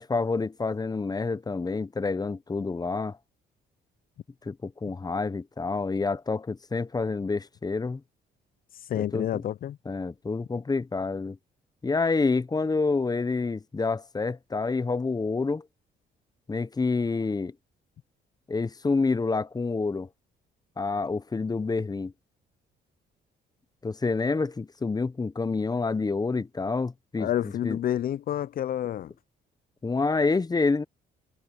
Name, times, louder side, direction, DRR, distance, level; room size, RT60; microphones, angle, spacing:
voice 1, 0.0-3.2 4.4-8.0 8.9-9.4 9.9-11.4 11.8-15.7 16.5-17.5 18.5-20.1 20.8-22.1 23.8-27.3 27.6-27.8 29.8-30.8, left 4 dB, 20° left, 0.7 m, -28 dB
voice 2, 8.8-9.8 27.2-29.1, left 11 dB, 50° left, 0.4 m, -29 dB
cardioid pair, 90°, 20 cm